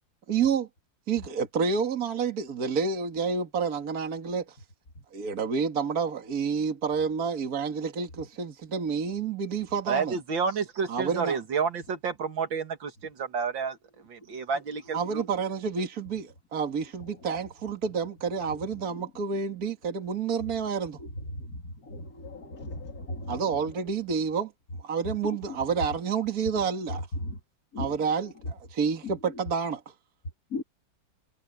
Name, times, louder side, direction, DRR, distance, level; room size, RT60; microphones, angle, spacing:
voice 1, 0.3-0.7 1.1-4.6 5.1-10.2 10.9-11.4 14.9-21.0 23.3-24.5 24.8-27.1 27.8-29.8, right 6 dB, 50° right, 2.2 m, -29 dB
voice 2, 9.9-13.8 14.1-15.2, right 5 dB, 80° right, 2.6 m, -30 dB
voice 3, 21.9-23.4 27.7-27.8 30.5-30.6, left 2 dB, 50° left, 3.1 m, -36 dB
omnidirectional pair, 2.0 m